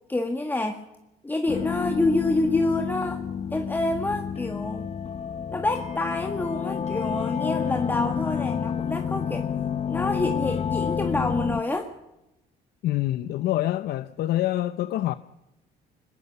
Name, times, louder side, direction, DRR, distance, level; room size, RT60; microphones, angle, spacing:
voice 1, 0.1-0.8 1.2-3.2 3.5-4.9 5.5-9.5 9.9-11.9, left 2 dB, 10° left, 1.8 m, -27 dB
sound 1, 1.5-11.6, left 7 dB, 40° left, 1.0 m, -29 dB
voice 2, 12.8-15.1, left 14 dB, 70° left, 0.8 m, -26 dB
21.5 x 21.0 x 6.9 m
cardioid pair, 110°, 17 cm